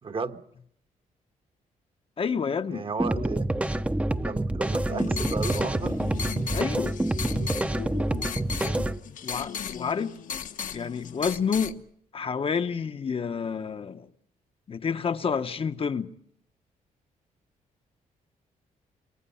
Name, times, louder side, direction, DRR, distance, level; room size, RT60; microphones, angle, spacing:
voice 1, 0.0-0.4 2.7-3.5 4.2-6.0, right 4 dB, 40° right, 1.4 m, -33 dB
voice 2, 2.2-2.9 3.1-3.2 6.5-7.0 9.2-10.1 10.7-11.8 12.1-14.1 14.7-16.1, left 6 dB, 40° left, 1.0 m, -29 dB
sound 1, 3.0-9.0, right 1 dB, 10° right, 0.8 m, -27 dB
sound 2, 4.7-11.7, left 7 dB, 65° left, 1.2 m, -36 dB
28.0 x 22.0 x 5.7 m
cardioid pair, 95°, 14 cm